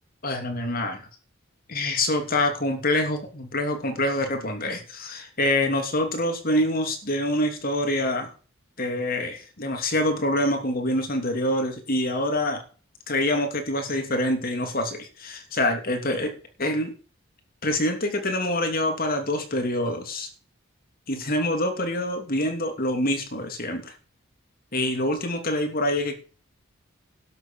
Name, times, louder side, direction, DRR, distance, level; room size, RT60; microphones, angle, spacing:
voice 1, 0.2-1.1 1.7-8.3 8.8-12.6 13.1-16.3 16.6-16.9 17.6-20.3 21.1-23.9 24.7-26.1, left 1 dB, 45° left, 5 dB, 3.0 m, -26 dB
11.5 x 7.0 x 7.5 m, 0.38 s
head